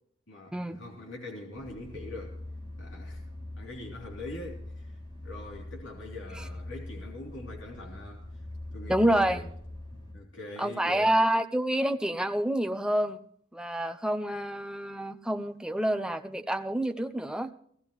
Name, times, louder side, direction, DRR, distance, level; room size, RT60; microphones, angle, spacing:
voice 1, 0.3-2.4 2.8-3.2 3.6-4.9 5.2-8.2 8.7-9.5 9.9-11.1, left 2 dB, 70° left, -1 dB, 3.2 m, -43 dB
sound 1, 1.5-10.1, left 1 dB, 25° left, 3.0 m, -43 dB
voice 2, 8.9-9.4 10.6-13.2 13.5-17.5, right 1 dB, 5° right, 7 dB, 0.6 m, -28 dB
18.0 x 14.5 x 3.1 m, 0.64 s
head